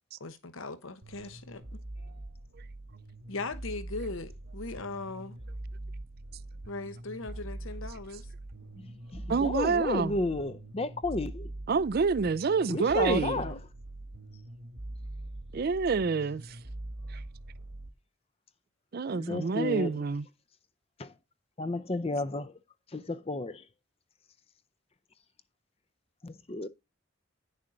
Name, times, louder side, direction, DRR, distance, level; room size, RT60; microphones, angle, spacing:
voice 1, 0.2-1.8 3.3-5.4 6.7-8.3 13.0-13.6, left 3 dB, 70° left, 1.1 m, -39 dB
sound 1, 1.0-17.9, right 1 dB, 70° right, 1.3 m, -43 dB
voice 2, 8.8-11.5 12.7-13.5 19.1-19.9 21.0-21.1 21.6-22.6 22.9-23.7 26.2-26.7, left 2 dB, 25° left, 0.5 m, -32 dB
voice 3, 9.3-10.1 11.7-13.4 15.5-16.6 17.1-17.2 18.9-20.3, right 5 dB, 45° right, 0.4 m, -27 dB
10.0 x 6.7 x 3.9 m
head